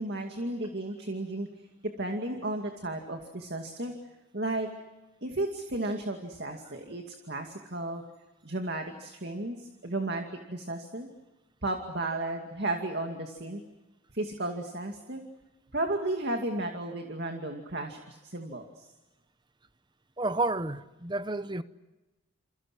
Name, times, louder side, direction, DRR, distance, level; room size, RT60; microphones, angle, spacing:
voice 1, 0.0-1.5 2.0-3.9 4.3-4.7 5.2-8.0 8.4-11.1 11.6-13.6 14.1-15.2 15.7-18.9, right 2 dB, 50° right, 2.3 m, -34 dB
voice 2, 20.2-21.6, right 2 dB, 20° right, 0.9 m, -30 dB
29.0 x 29.0 x 6.2 m
head